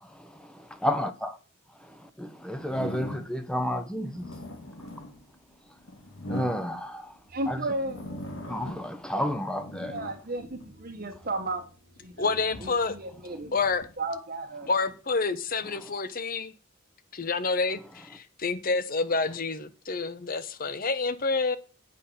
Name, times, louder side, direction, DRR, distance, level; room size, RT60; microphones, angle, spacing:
voice 1, 0.0-1.3 1.8-4.3 6.3-7.2 7.5-7.6 8.5-9.9, left 1 dB, 5° left, 0.8 m, -31 dB
sound 1, 2.6-3.5 4.0-7.2 7.7-9.0 9.3-11.2 11.8-13.9, left 1 dB, 65° left, 2.1 m, -41 dB
voice 2, 7.3-8.1 9.9-11.7 12.0-12.3 12.6-13.6 14.0-14.7, right 2 dB, 45° right, 1.0 m, -34 dB
voice 3, 12.2-13.0 13.5-13.9 14.7-16.5 17.1-21.6, left 4 dB, 40° left, 0.8 m, -28 dB
8.2 x 5.6 x 6.8 m
head